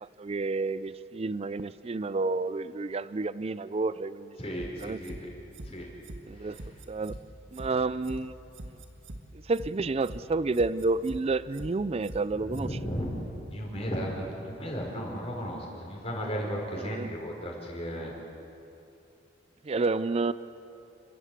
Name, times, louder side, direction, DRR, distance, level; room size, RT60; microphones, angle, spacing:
voice 1, 0.0-4.4 4.8-5.0 6.3-7.2 7.5-8.4 9.4-12.7 16.8-17.1 19.6-20.3, right 3 dB, 30° right, 16 dB, 0.4 m, -30 dB
voice 2, 4.4-5.3 5.6-5.9 6.3-6.7 7.6-7.7 12.4-13.2 13.5-18.1, equal, 30° left, -1 dB, 4.8 m, -35 dB
sound 1, 4.6-5.2 5.5-5.7 6.0-6.2 6.5-7.2 7.5-7.7 8.0-8.2 8.5-9.2 9.5-9.7 10.0-10.2 10.5-11.2 11.5-11.7 12.0-12.2 12.5-12.6, right 1 dB, 65° right, 1.5 m, -41 dB
29.5 x 13.0 x 8.2 m, 2.9 s
head